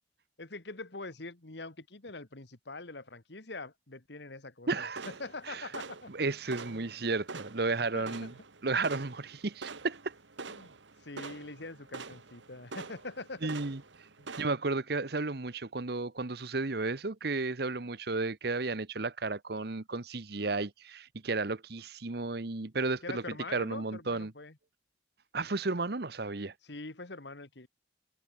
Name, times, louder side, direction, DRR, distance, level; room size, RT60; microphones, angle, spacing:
voice 1, 0.4-6.1 6.7-6.9 7.9-8.4 10.5-13.5 14.2-14.3 23.0-24.6 26.6-27.7, left 3 dB, 65° left, 1.9 m, -44 dB
voice 2, 4.7-5.1 5.5-5.6 6.1-8.3 8.6-10.1 13.4-13.8 14.4-24.3 25.3-26.5, right 3 dB, 55° right, 1.1 m, -33 dB
sound 1, 4.9-14.5, right 4 dB, 80° right, 1.7 m, -46 dB
head